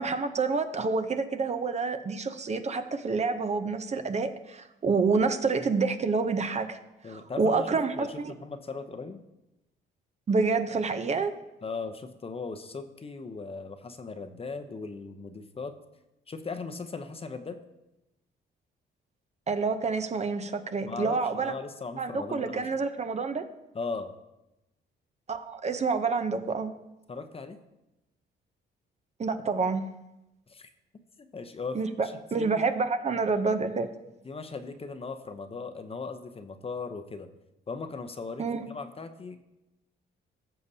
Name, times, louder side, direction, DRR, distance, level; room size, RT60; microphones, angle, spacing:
voice 1, 0.0-6.8 7.0-8.3 10.3-11.3 19.5-21.5 22.0-23.5 25.3-26.7 29.2-29.8 31.7-33.9 38.4-38.7, right 4 dB, 35° right, 8 dB, 0.7 m, -28 dB
voice 2, 7.0-8.1 8.4-9.2 11.6-15.7 16.3-17.6 20.8-22.7 23.7-24.1 27.1-27.6 30.5-30.7 31.2-32.5 34.2-37.3 37.7-39.4, left 4 dB, 30° left, 9 dB, 0.7 m, -38 dB
15.0 x 6.7 x 2.8 m, 0.93 s
cardioid pair, 90°, 20 cm